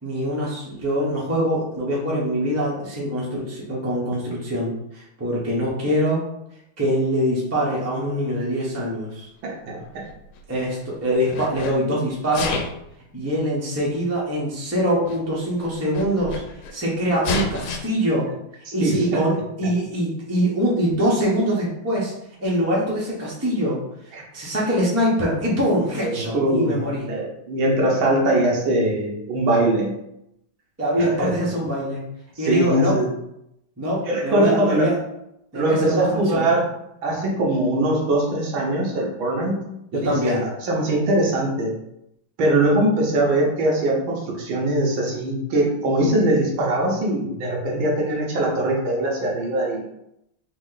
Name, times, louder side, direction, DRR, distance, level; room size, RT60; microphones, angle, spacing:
voice 1, 0.0-6.2 6.8-9.3 10.5-12.7 13.1-16.4 16.7-18.3 18.7-22.1 22.4-23.8 24.3-27.0 30.8-32.0 32.4-33.0 33.8-34.9 35.5-36.5 39.9-40.4, equal, 10° right, -5 dB, 0.7 m, -23 dB
voice 2, 9.4-10.0 18.7-19.2 19.6-19.7 24.1-24.2 26.0-26.8 27.1-30.0 31.0-31.4 32.4-33.1 34.0-34.9 35.5-36.7 37.0-39.6 39.9-41.7 42.4-49.8, right 1 dB, 70° right, -2 dB, 1.7 m, -22 dB
Sneeze, 9.8-10.8 11.2-11.8 12.2-12.9 13.8-13.9 14.8-14.9 15.1-15.2 15.6-16.7 17.2-17.8, left 4 dB, 85° left, 1.5 m, -30 dB
4.2 x 3.0 x 3.9 m, 0.81 s
omnidirectional pair, 2.3 m